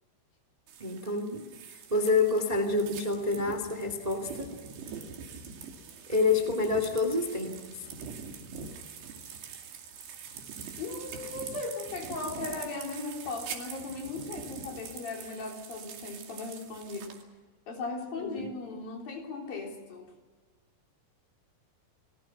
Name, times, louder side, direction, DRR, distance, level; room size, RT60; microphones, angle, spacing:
sound 1, 0.7-17.2, right 6 dB, 75° right, 4.5 m, -44 dB
voice 1, 0.8-1.5 1.9-4.5 6.1-7.5 18.1-18.5, left 3 dB, 20° right, 7 dB, 1.1 m, -28 dB
voice 2, 10.8-17.2 17.7-20.1, left 3 dB, 60° left, 1 dB, 5.3 m, -38 dB
30.0 x 20.0 x 6.0 m, 1.3 s
omnidirectional pair, 4.8 m